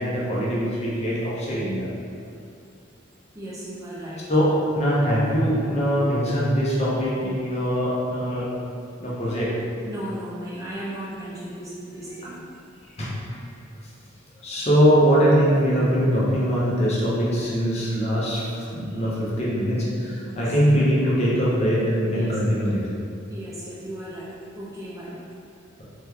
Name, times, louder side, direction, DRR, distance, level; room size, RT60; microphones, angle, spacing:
voice 1, 0.0-1.9 4.3-8.5 9.0-9.6 12.9-13.4 14.4-22.9, equal, 30° left, -7 dB, 0.6 m, -22 dB
voice 2, 0.7-1.0 3.3-4.3 9.8-12.5 20.2-20.5 22.1-22.4 23.3-25.3, right 1 dB, 15° right, -8 dB, 0.4 m, -36 dB
2.9 x 2.2 x 3.3 m, 2.4 s
head